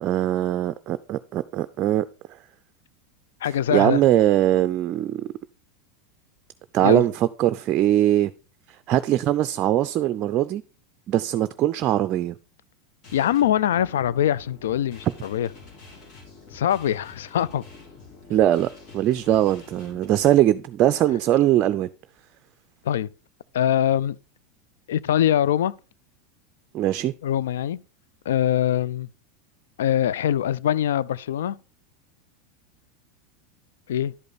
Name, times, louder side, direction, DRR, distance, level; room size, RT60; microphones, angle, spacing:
voice 1, 0.0-2.0 3.7-5.2 6.7-8.3 8.9-10.6 11.1-12.3 18.3-21.9 26.7-27.1, right 12 dB, 45° right, 0.4 m, -21 dB
voice 2, 3.4-4.0 6.8-7.0 13.1-15.5 16.5-17.6 22.8-23.1 23.5-24.2 24.9-25.7 27.2-27.8 28.3-29.1 29.8-31.6 33.9-34.1, left 11 dB, 80° left, 0.4 m, -23 dB
sound 1, 13.0-20.4, left 4 dB, 55° left, 3.4 m, -47 dB
11.0 x 5.3 x 4.0 m
hypercardioid pair, 95°, 0 cm